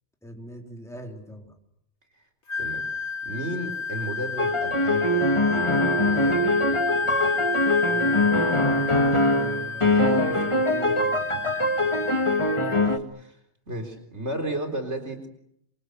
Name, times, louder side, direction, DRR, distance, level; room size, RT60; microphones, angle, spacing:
voice 1, 0.2-1.5 7.9-11.2, equal, ahead, 1 dB, 4.0 m, -41 dB
Wind instrument woodwind instrument, 2.5-12.9, left 5 dB, 80° left, 1.8 m, -31 dB
voice 2, 3.2-6.8 12.7-13.4 13.7-15.3, right 1 dB, 80° right, 4 dB, 4.4 m, -34 dB
sound 1, 4.4-13.0, left 1 dB, 25° left, 2.1 m, -23 dB
28.0 x 25.5 x 8.1 m, 0.75 s
omnidirectional pair, 1.2 m